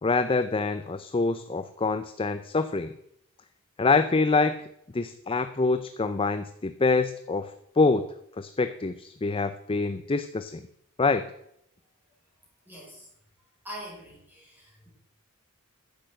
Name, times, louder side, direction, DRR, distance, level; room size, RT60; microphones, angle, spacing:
voice 1, 0.0-2.9 3.8-4.6 4.9-10.7 11.0-11.2, left 3 dB, 25° left, 10 dB, 0.5 m, -26 dB
voice 2, 12.7-13.1 13.6-14.9, equal, 10° right, -4 dB, 5.4 m, -43 dB
10.5 x 7.9 x 7.6 m, 0.74 s
head